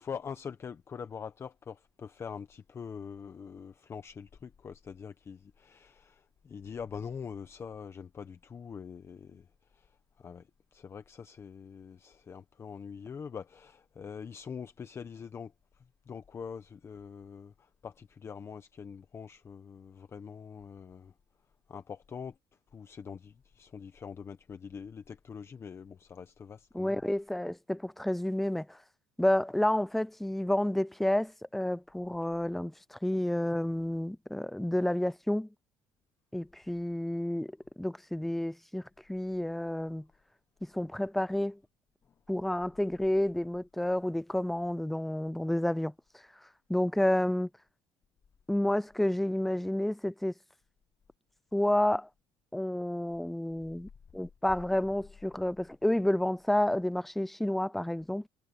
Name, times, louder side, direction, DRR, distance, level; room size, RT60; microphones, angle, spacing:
voice 1, 0.0-9.5 9.7-9.9 10.2-15.5 16.1-21.1 21.7-22.3 22.7-27.0, left 6 dB, 25° left, 0.9 m, -44 dB
voice 2, 26.7-28.8 29.2-35.5 36.3-37.5 37.8-38.8 39.1-40.1 40.6-41.6 42.3-45.9 46.7-47.5 48.5-50.3 51.5-52.1 52.5-58.3, left 1 dB, ahead, 0.4 m, -30 dB
cardioid pair, 155°, 10 cm